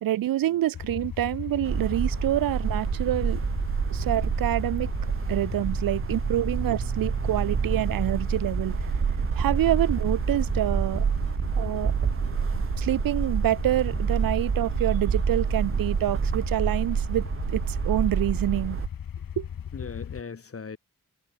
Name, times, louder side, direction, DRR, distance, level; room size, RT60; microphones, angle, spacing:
voice 1, 0.0-3.4 3.9-4.9 5.3-8.7 9.4-11.1 11.6-11.9 12.8-18.8 19.4-19.5, right 13 dB, 85° right, 0.5 m, -27 dB
sound 1, 0.7-20.2, left 8 dB, 90° left, 2.0 m, -37 dB
sound 2, 1.6-18.9, right 6 dB, 40° right, 0.9 m, -28 dB
voice 2, 3.9-4.3 19.0-19.4 19.7-20.8, left 5 dB, 40° left, 3.9 m, -42 dB
sound 3, 7.7-18.4, left 2 dB, 20° left, 7.3 m, -62 dB
wide cardioid pair, 165°, 33 cm